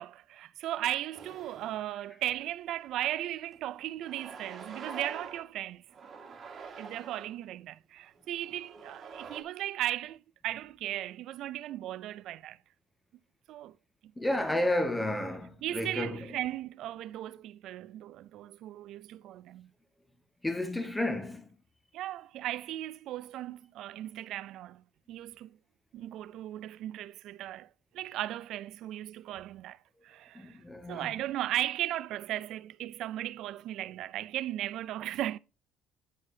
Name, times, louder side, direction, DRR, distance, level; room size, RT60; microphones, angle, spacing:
voice 1, 0.0-5.8 6.8-12.6 13.5-13.7 15.6-19.7 21.9-24.8 25.1-25.6 25.9-27.7 27.9-29.8 30.0-30.6 30.9-35.4, right 13 dB, 70° right, 0.4 m, -36 dB
sound 1, 1.1-1.8 2.3-2.4 3.4-3.6 4.0-5.5 5.9-7.3 8.2-9.4, right 5 dB, 45° right, 1.7 m, -46 dB
voice 2, 14.2-16.3 20.4-21.5 30.3-31.1, left 1 dB, 10° left, 1.7 m, -31 dB
9.5 x 6.1 x 2.7 m
cardioid pair, 100°, 0 cm